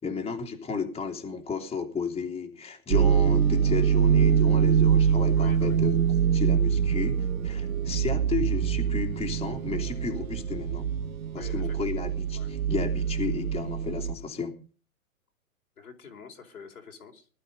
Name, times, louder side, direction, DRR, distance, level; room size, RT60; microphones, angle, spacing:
voice 1, 0.0-6.0 6.3-10.9 11.3-14.5, left 5 dB, 15° left, 3 dB, 3.0 m, -33 dB
sound 1, 2.9-14.1, right 8 dB, 70° right, 1.2 m, -24 dB
voice 2, 5.3-5.8 11.3-11.8 12.3-12.5 15.8-17.3, left 6 dB, 80° left, 2 dB, 4.8 m, -46 dB
20.0 x 12.0 x 5.4 m, 0.39 s
hypercardioid pair, 120°, 43 cm